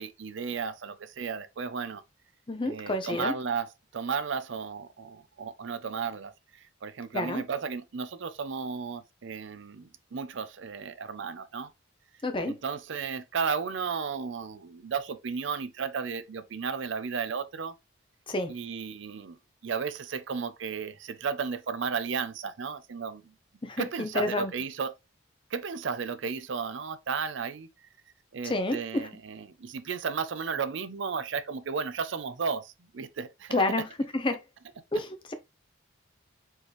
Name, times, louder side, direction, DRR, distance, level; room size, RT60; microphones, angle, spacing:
voice 1, 0.0-2.0 2.6-6.3 6.6-11.7 12.5-17.7 18.5-19.4 19.6-23.2 23.8-24.9 25.5-27.7 28.3-33.6, right 5 dB, 65° right, 0.5 m, -34 dB
voice 2, 2.5-3.3 7.1-7.4 12.2-12.6 18.3-18.5 23.6-24.5 28.4-29.1 33.5-33.8 34.1-34.4 34.9-35.3, left 2 dB, 25° left, 0.6 m, -29 dB
4.5 x 3.1 x 3.3 m
head